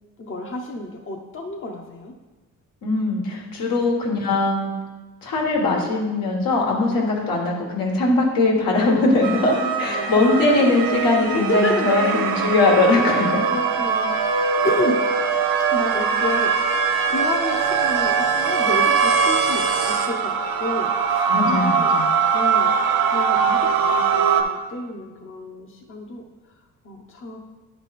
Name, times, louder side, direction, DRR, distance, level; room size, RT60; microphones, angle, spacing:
voice 1, 0.2-2.1 7.1-7.3 9.0-12.5 12.9-15.0 15.7-16.5 17.1-22.0 22.3-22.8 23.0-26.6 26.8-27.4, left 2 dB, 35° left, 1 dB, 0.8 m, -30 dB
voice 2, 2.8-4.7 5.2-13.3 21.3-22.1, left 2 dB, 80° left, -1 dB, 1.6 m, -20 dB
sound 1, 9.2-24.4, right 6 dB, 80° right, 0.7 m, -21 dB
9.8 x 3.4 x 4.2 m, 1.2 s
cardioid pair, 90°, 34 cm